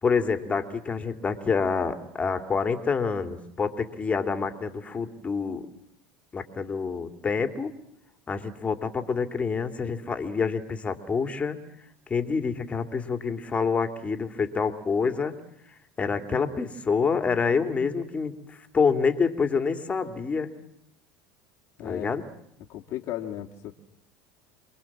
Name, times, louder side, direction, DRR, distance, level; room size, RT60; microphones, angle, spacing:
voice 1, 0.0-5.6 6.3-7.7 8.3-11.6 12.1-15.3 16.0-20.5 21.8-22.2, left 5 dB, 25° left, 7 dB, 2.9 m, -27 dB
voice 2, 21.8-22.1 22.7-23.7, left 12 dB, 55° left, 0 dB, 2.1 m, -35 dB
28.0 x 22.5 x 7.5 m, 0.74 s
supercardioid pair, 100°, 6 cm